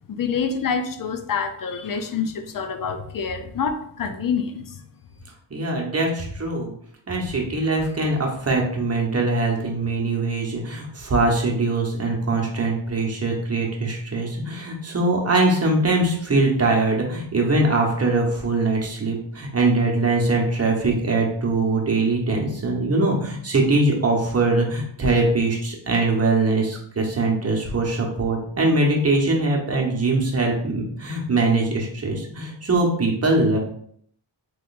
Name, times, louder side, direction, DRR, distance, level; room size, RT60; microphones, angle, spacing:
voice 1, 0.1-4.8, left 6 dB, 45° left, 8 dB, 0.6 m, -27 dB
voice 2, 5.5-6.7 7.1-33.6, right 2 dB, 30° right, 0 dB, 1.1 m, -22 dB
3.6 x 3.2 x 2.5 m, 0.63 s
cardioid pair, 70°, 50 cm